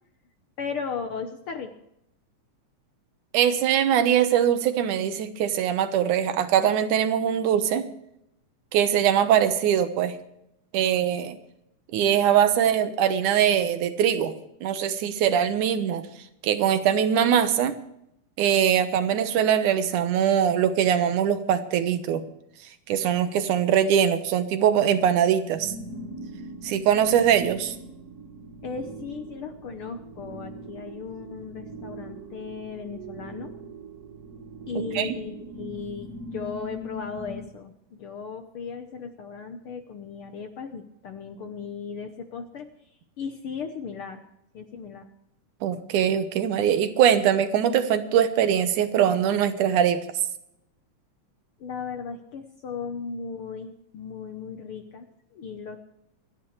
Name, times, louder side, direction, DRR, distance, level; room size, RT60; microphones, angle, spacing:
voice 1, 0.6-1.7 28.6-33.5 34.7-42.9 43.2-44.2 44.5-45.1 51.6-55.8, left 5 dB, 65° left, 6 dB, 1.4 m, -36 dB
voice 2, 3.3-7.9 8.7-10.2 10.7-11.4 11.9-14.4 14.6-16.0 16.4-17.8 18.4-22.2 22.9-25.7 26.6-27.8 35.0-35.1 45.6-50.0, right 9 dB, 80° right, 9 dB, 2.5 m, -22 dB
sound 1, 25.5-37.5, right 1 dB, 50° right, 1.2 m, -41 dB
28.0 x 10.0 x 3.2 m, 0.79 s
omnidirectional pair, 3.5 m